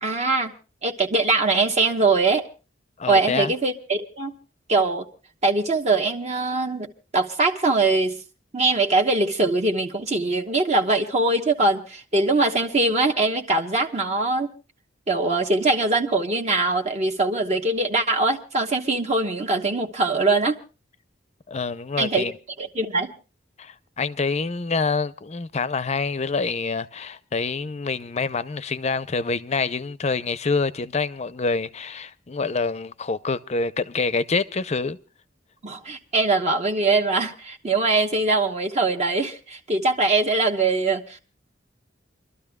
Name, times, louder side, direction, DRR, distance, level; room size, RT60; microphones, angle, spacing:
voice 1, 0.0-0.5 0.8-2.4 3.1-4.3 4.7-5.1 5.4-6.9 7.1-8.2 8.5-14.5 15.1-20.6 22.0-22.2 22.6-23.1 35.6-41.2, right 3 dB, 40° right, 1.1 m, -22 dB
voice 2, 3.0-3.5 21.5-22.3 23.6-35.0, left 4 dB, 40° left, 0.6 m, -26 dB
29.0 x 12.5 x 2.3 m
head